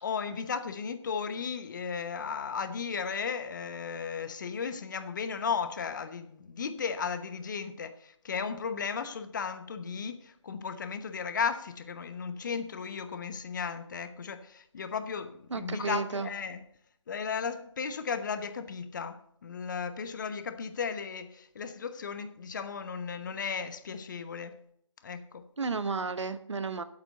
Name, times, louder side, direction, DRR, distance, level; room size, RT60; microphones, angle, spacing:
voice 1, 0.0-16.6 17.1-24.6 25.0-25.4, left 6 dB, 40° left, 1.0 m, -35 dB
voice 2, 15.5-16.3 25.6-26.8, right 4 dB, 70° right, 1.0 m, -32 dB
8.2 x 8.1 x 7.8 m
figure-of-eight pair, 150°, 16 cm